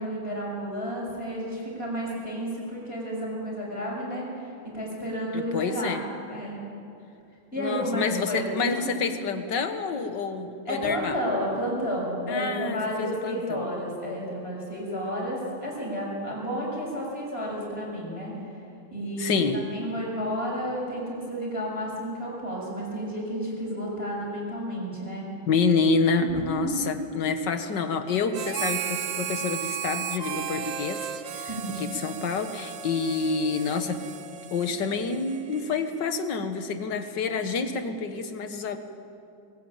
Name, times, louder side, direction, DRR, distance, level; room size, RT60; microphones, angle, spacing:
voice 1, 0.0-6.0 6.3-6.6 7.5-9.0 10.7-18.4 18.9-19.4 19.7-25.3 26.2-26.7 31.5-31.8, equal, 30° left, -3 dB, 7.0 m, -31 dB
voice 2, 5.3-6.0 7.6-11.2 12.3-13.6 19.2-19.6 25.5-31.1 31.3-31.5 31.8-34.0 34.5-38.8, left 4 dB, 60° left, 8 dB, 1.9 m, -28 dB
Harmonica, 28.3-36.1, right 8 dB, 70° right, 1.7 m, -35 dB
21.0 x 19.5 x 8.9 m, 2.6 s
omnidirectional pair, 2.2 m